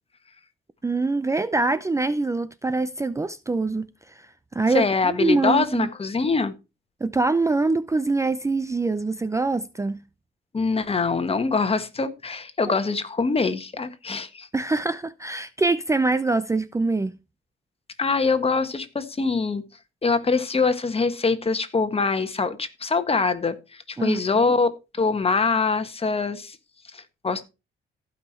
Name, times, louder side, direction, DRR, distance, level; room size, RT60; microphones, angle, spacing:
voice 1, 0.8-5.9 7.0-10.0 12.7-12.8 14.5-17.2 24.0-24.4, right 3 dB, 15° right, 0.5 m, -24 dB
voice 2, 4.7-6.5 10.5-14.5 18.0-19.6 20.0-26.6 26.9-27.4, left 4 dB, 30° left, 1.6 m, -24 dB
15.0 x 5.7 x 4.3 m
cardioid pair, 90°, 20 cm